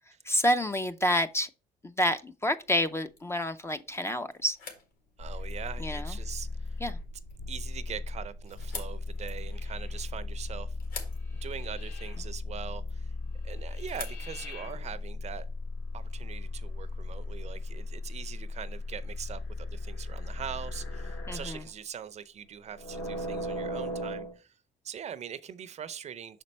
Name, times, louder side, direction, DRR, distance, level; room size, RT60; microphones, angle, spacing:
voice 1, 0.3-1.5 1.8-4.6 5.8-6.1 6.8-7.0 21.3-21.6, equal, 15° left, 0.4 m, -28 dB
sound 1, 2.6-15.5, left 5 dB, 60° left, 1.7 m, -50 dB
sound 2, 5.2-21.7 22.7-24.3, left 2 dB, 75° left, 1.9 m, -37 dB
voice 2, 5.2-6.5 7.5-10.7 11.3-13.1 13.4-15.5 15.9-24.5 24.8-26.4, right 8 dB, 40° right, 0.5 m, -42 dB
5.8 x 4.4 x 4.1 m
cardioid pair, 110°, 17 cm